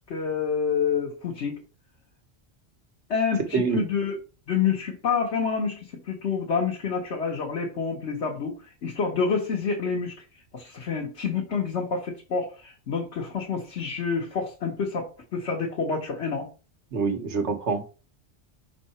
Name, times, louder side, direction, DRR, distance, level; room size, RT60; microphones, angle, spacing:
voice 1, 0.1-1.6 3.1-4.2 4.5-10.2 10.5-16.5, left 5 dB, 85° left, -1 dB, 1.5 m, -28 dB
voice 2, 3.5-3.9 16.9-17.9, right 5 dB, 85° right, 5 dB, 1.5 m, -26 dB
5.6 x 4.1 x 4.2 m, 0.33 s
omnidirectional pair, 1.1 m